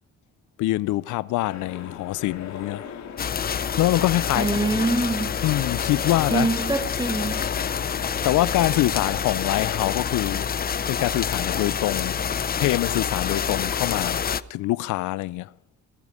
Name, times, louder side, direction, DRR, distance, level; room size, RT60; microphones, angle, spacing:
voice 1, 0.6-3.1 3.8-4.8 5.4-6.5 8.2-10.5 10.9-12.2 12.6-15.5, left 16 dB, 85° left, 0.5 m, -25 dB
sound 1, 1.4-9.2, left 7 dB, 65° left, 1.9 m, -38 dB
sound 2, 3.2-14.4, left 7 dB, 30° left, 0.5 m, -27 dB
voice 2, 4.3-5.3 6.3-7.5, right 2 dB, 15° right, 1.2 m, -24 dB
20.0 x 9.4 x 4.9 m
cardioid pair, 90°, 30 cm